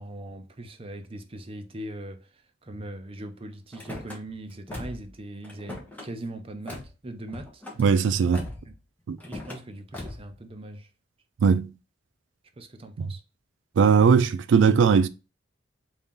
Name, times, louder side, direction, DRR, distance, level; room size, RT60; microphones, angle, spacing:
voice 1, 0.0-7.6 8.6-8.7 9.3-10.9 12.6-13.2, right 1 dB, 30° right, 0.6 m, -40 dB
Car / Slam, 3.7-4.2 4.7-5.1 5.4-6.1 6.7-6.9 7.3-7.8 8.3-8.7 9.2-9.6 9.9-10.3, left 1 dB, 10° left, 1.0 m, -39 dB
voice 2, 7.8-8.5 9.1-9.2 11.4-11.7 13.0-13.1 13.8-15.1, right 6 dB, 75° right, 0.3 m, -19 dB
3.7 x 2.8 x 3.6 m
head